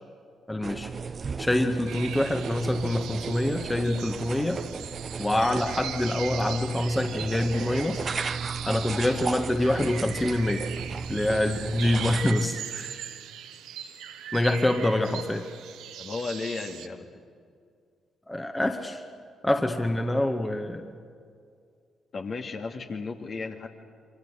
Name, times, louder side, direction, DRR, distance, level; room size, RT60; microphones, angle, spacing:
voice 1, 0.5-0.9 1.4-4.6 5.2-8.1 8.7-10.7 11.1-13.0 14.3-15.4 18.3-19.0 19.4-20.8, left 1 dB, 15° left, 5 dB, 1.9 m, -26 dB
sound 1, 0.6-12.3, right 5 dB, 45° right, 0.9 m, -35 dB
sound 2, 1.9-16.9, right 9 dB, 75° right, 1.2 m, -40 dB
voice 2, 16.0-17.1 22.1-23.7, left 4 dB, 50° left, 2 dB, 2.7 m, -34 dB
27.5 x 24.5 x 6.7 m, 2.2 s
hypercardioid pair, 45°, 0 cm